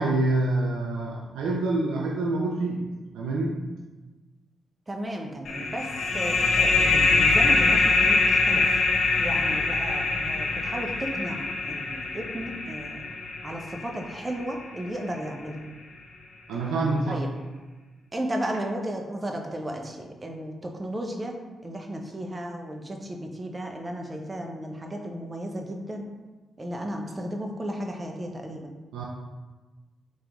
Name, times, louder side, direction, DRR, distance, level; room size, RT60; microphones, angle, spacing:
voice 1, 0.0-2.9 3.1-3.6 9.5-9.6 16.5-17.2 28.9-29.0, right 2 dB, 80° right, -2 dB, 0.4 m, -26 dB
voice 2, 4.9-8.8 9.2-13.1 13.4-15.6 17.1-17.3 18.1-21.4 21.6-26.1 26.6-28.7, right 1 dB, 30° right, 2 dB, 0.7 m, -34 dB
sound 1, 5.5-14.7, left 3 dB, 70° left, 0.5 m, -24 dB
3.3 x 3.2 x 3.6 m, 1.2 s
hypercardioid pair, 45°, 0 cm